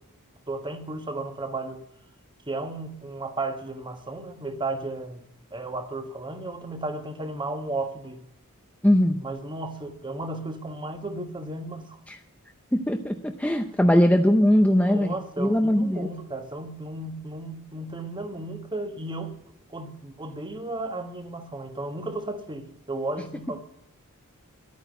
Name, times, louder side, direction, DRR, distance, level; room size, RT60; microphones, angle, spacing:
voice 1, 0.5-1.8 2.5-5.2 5.5-8.2 9.2-12.0 14.7-19.4 19.7-23.6, right 2 dB, 20° right, 1.3 m, -34 dB
voice 2, 8.8-9.2 12.1-12.2 12.7-16.1, equal, 5° left, 0.6 m, -21 dB
11.0 x 9.2 x 9.1 m
head